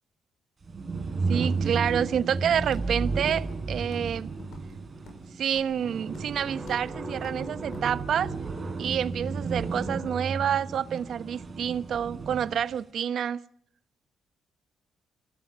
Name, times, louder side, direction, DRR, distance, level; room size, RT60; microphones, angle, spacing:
sound 1, 0.6-12.6, right 4 dB, 30° right, 4.8 m, -33 dB
voice 1, 1.3-4.3 5.4-8.3 8.8-13.4, right 8 dB, 65° right, 0.9 m, -28 dB
Walk footsteps, 2.7-3.0 3.2-3.5 3.8-4.1 4.4-5.2 5.5-5.8 6.1-6.4 6.6-6.9 7.1-7.4 7.7-7.9, left 2 dB, 65° left, 6.4 m, -47 dB
22.0 x 15.5 x 8.4 m
cardioid pair, 90°, 0 cm